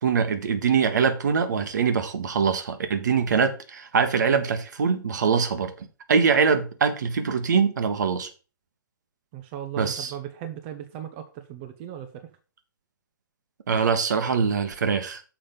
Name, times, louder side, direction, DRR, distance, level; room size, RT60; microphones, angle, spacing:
voice 1, 0.0-8.3 9.8-10.1 13.7-15.2, right 6 dB, 60° right, 1.3 m, -23 dB
voice 2, 9.3-12.3, right 10 dB, 30° right, 0.9 m, -37 dB
7.1 x 5.1 x 5.5 m
figure-of-eight pair, 125°, 11 cm